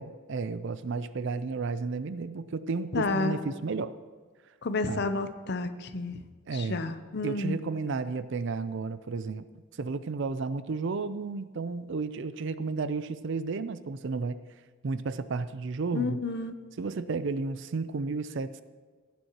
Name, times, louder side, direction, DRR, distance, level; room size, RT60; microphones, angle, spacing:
voice 1, 0.0-3.9 4.9-5.1 6.5-6.8 7.2-9.5 9.8-14.4 14.8-16.2 16.8-18.6, right 4 dB, 55° right, 14 dB, 0.4 m, -32 dB
voice 2, 2.9-3.4 4.6-6.2 6.5-7.6 15.9-16.5, left 3 dB, 50° left, 10 dB, 0.6 m, -30 dB
15.5 x 9.3 x 2.9 m, 1.5 s
head